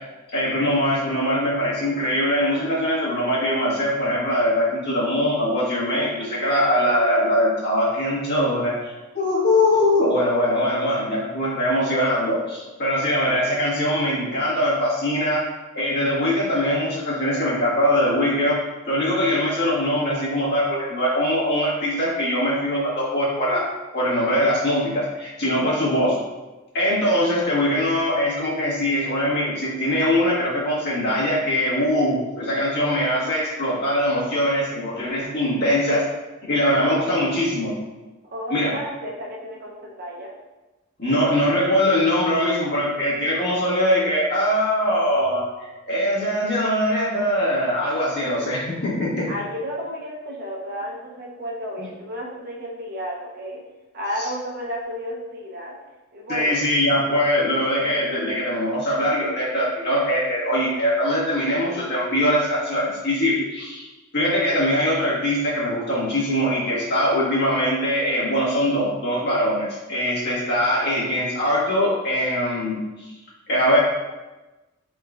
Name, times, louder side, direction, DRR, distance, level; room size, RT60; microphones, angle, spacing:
voice 1, 0.3-15.4 15.7-18.6 18.9-23.6 23.9-26.1 26.7-36.0 36.4-37.7 38.5-38.7 41.0-49.3 54.2-54.3 56.3-63.9 64.1-73.1 73.5-73.8, equal, 45° left, -7 dB, 1.4 m, -22 dB
voice 2, 38.2-40.3 49.3-53.6 53.9-55.7 56.1-56.6, equal, 45° right, -2 dB, 0.7 m, -32 dB
4.7 x 3.7 x 2.4 m, 1.1 s
head